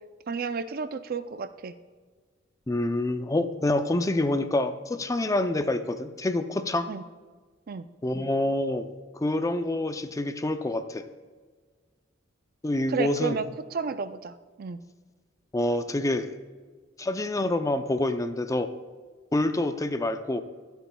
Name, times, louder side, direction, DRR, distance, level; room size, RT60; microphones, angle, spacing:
voice 1, 0.3-1.7 6.9-7.0 7.7-7.9 12.9-13.5 13.7-14.8, right 5 dB, 50° right, 12 dB, 0.4 m, -32 dB
voice 2, 2.7-6.9 8.0-8.9 9.1-11.0 12.6-13.4 15.5-16.3 17.0-18.7 19.3-20.4, left 1 dB, 15° left, 9 dB, 0.4 m, -27 dB
24.0 x 8.1 x 2.3 m, 1.5 s
head